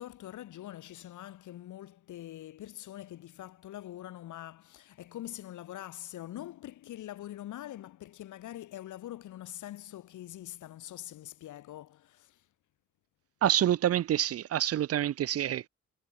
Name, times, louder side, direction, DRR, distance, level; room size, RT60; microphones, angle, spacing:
voice 1, 0.0-12.4, left 13 dB, 80° left, 3.0 m, -44 dB
voice 2, 13.4-15.7, right 11 dB, 50° right, 0.6 m, -27 dB
cardioid pair, 90°, 30 cm